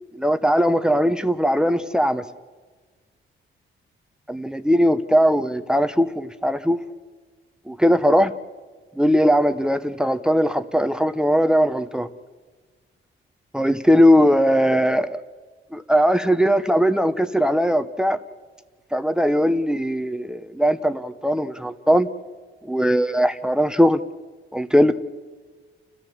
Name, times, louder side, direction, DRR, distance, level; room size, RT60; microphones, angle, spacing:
voice 1, 0.1-2.2 4.3-6.8 7.7-8.3 9.0-12.1 13.5-15.2 15.7-18.2 18.9-22.1 22.6-24.0 24.5-24.9, equal, 5° right, 1.0 m, -19 dB
29.5 x 14.0 x 7.3 m
cardioid pair, 105°, 21 cm